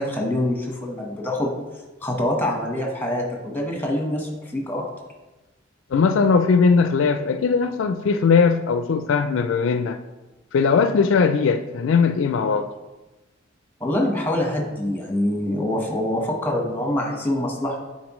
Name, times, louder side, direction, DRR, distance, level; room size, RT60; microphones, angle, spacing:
voice 1, 0.0-1.5 2.0-4.8 13.8-17.8, left 1 dB, 10° left, 0 dB, 1.2 m, -25 dB
voice 2, 5.9-10.0 10.5-12.7, left 5 dB, 70° left, 9 dB, 0.4 m, -19 dB
9.4 x 4.2 x 3.1 m, 1.1 s
head